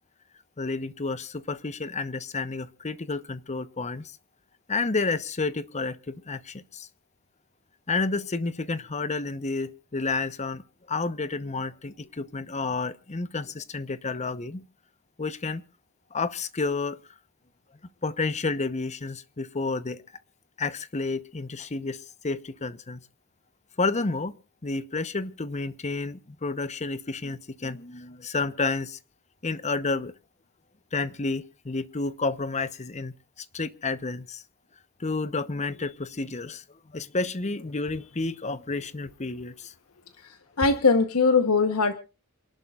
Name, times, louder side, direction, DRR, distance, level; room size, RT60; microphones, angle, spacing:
voice 1, 0.6-4.1 4.7-6.9 7.9-10.6 10.9-14.6 15.2-15.6 16.1-17.0 18.0-20.0 20.6-23.0 23.8-24.3 24.6-29.0 29.4-30.1 30.9-33.1 33.5-34.4 35.0-36.6 36.9-39.7, left 3 dB, 30° left, 14 dB, 0.9 m, -30 dB
voice 2, 40.2-41.9, left 4 dB, 75° left, 8 dB, 1.1 m, -22 dB
28.0 x 11.5 x 2.4 m, 0.31 s
head